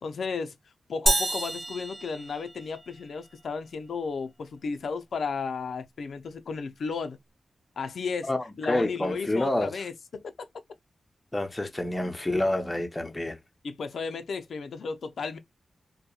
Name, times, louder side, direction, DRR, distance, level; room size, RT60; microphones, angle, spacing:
voice 1, 0.0-0.5 0.9-7.2 7.8-8.3 8.6-10.5 13.6-15.4, left 5 dB, 80° left, 0.4 m, -34 dB
sound 1, 1.1-3.0, right 2 dB, 30° right, 0.4 m, -28 dB
voice 2, 8.3-9.8 11.3-13.4, left 1 dB, 15° left, 0.6 m, -28 dB
2.8 x 2.1 x 2.2 m
wide cardioid pair, 120°, 0 cm